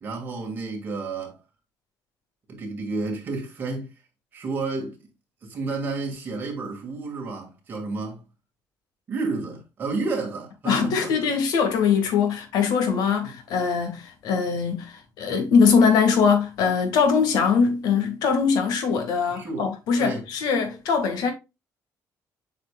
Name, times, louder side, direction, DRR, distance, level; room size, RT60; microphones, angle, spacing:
voice 1, 0.0-1.4 2.5-3.9 4.3-4.9 5.4-8.2 9.1-11.3 13.2-13.4 19.3-19.7 20.0-20.2, right 3 dB, 30° right, 2.2 m, -31 dB
voice 2, 10.7-21.3, left 6 dB, 80° left, 1.9 m, -22 dB
8.1 x 4.9 x 2.4 m
cardioid pair, 180°, 7 cm